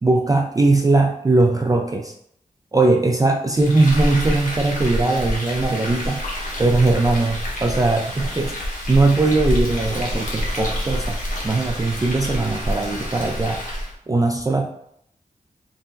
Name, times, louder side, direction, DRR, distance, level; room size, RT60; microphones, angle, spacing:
voice 1, 0.0-2.1 2.7-6.2 6.6-8.5 8.9-11.2 11.4-13.6 14.1-14.7, right 2 dB, 25° right, 2 dB, 0.3 m, -19 dB
Frying (food), 3.6-13.9, equal, 65° left, 0.9 m, -27 dB
3.7 x 2.0 x 2.6 m, 0.69 s
cardioid pair, 50°, 15 cm